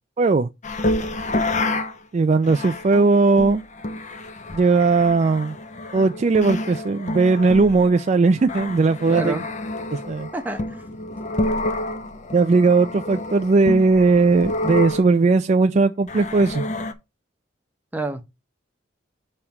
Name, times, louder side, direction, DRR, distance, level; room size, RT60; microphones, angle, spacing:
voice 1, 0.2-0.5 2.1-3.6 4.5-5.6 5.9-9.4 9.9-10.3 12.3-16.6, right 3 dB, 35° right, 0.3 m, -18 dB
sound 1, 0.6-2.0 2.4-15.1 16.1-16.9, left 1 dB, 40° left, 0.7 m, -29 dB
voice 2, 9.1-9.4 10.3-10.8 17.9-18.2, right 2 dB, 10° right, 0.8 m, -28 dB
7.0 x 3.3 x 5.8 m
head